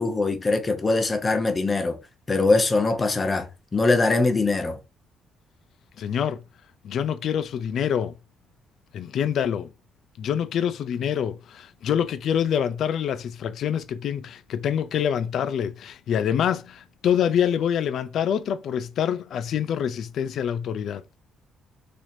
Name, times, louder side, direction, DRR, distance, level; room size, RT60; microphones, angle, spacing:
voice 1, 0.0-2.0 2.3-4.8, left 3 dB, 25° left, 0.7 m, -22 dB
voice 2, 6.0-6.4 6.8-8.1 8.9-9.7 10.2-21.0, left 8 dB, 60° left, 0.3 m, -26 dB
4.2 x 3.0 x 2.6 m
cardioid pair, 125°, 0 cm